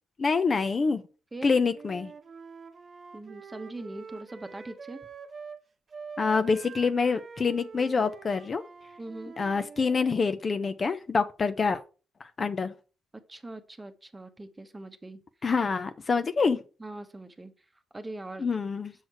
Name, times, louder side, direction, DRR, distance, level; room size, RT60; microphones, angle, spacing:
voice 1, 0.2-1.0 1.4-2.1 6.2-8.6 9.4-11.8 12.2-12.7 15.4-16.6 18.4-18.9, left 4 dB, 40° left, 0.6 m, -26 dB
Wind instrument woodwind instrument, 1.7-5.6 5.9-10.2, right 5 dB, 40° right, 1.0 m, -46 dB
voice 2, 3.1-5.0 9.0-9.3 13.3-15.2 16.8-17.5 17.9-18.5, right 2 dB, 15° right, 1.0 m, -41 dB
6.5 x 6.2 x 4.8 m
cardioid pair, 90°, 0 cm